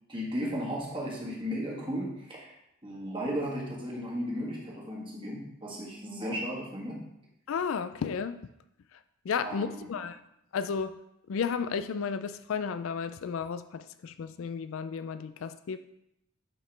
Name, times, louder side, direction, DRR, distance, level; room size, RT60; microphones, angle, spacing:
voice 1, 0.1-2.5 2.8-7.0 9.4-9.9, equal, 25° right, -3 dB, 1.5 m, -35 dB
voice 2, 7.5-8.4 9.2-10.2 10.5-11.0 11.3-15.8, left 6 dB, 65° left, 11 dB, 0.3 m, -33 dB
8.7 x 4.8 x 3.3 m, 0.80 s
head